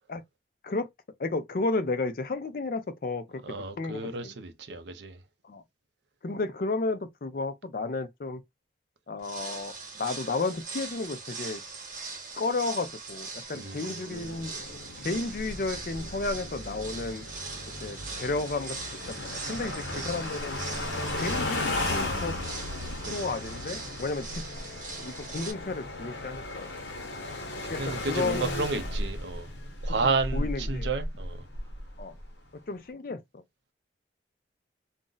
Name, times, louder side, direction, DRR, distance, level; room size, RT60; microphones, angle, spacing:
voice 1, 1.2-3.4 3.8-4.3 5.4-5.6 6.2-8.4 9.1-11.6 12.4-14.5 15.0-17.2 17.8-18.8 19.1-20.9 21.1-22.4 23.1-24.4 25.0-26.7 27.7-28.7 30.3-30.9 32.0-32.2 32.7-33.4, left 3 dB, 50° left, 0.4 m, -32 dB
voice 2, 3.4-5.2 13.5-14.5 19.6-20.1 23.0-23.3 27.6-29.5 29.8-31.4, right 4 dB, 75° right, 0.5 m, -32 dB
sound 1, 9.2-25.5, right 4 dB, 45° right, 0.8 m, -41 dB
sound 2, 14.1-32.3, left 2 dB, 80° left, 0.8 m, -35 dB
2.5 x 2.1 x 3.7 m
head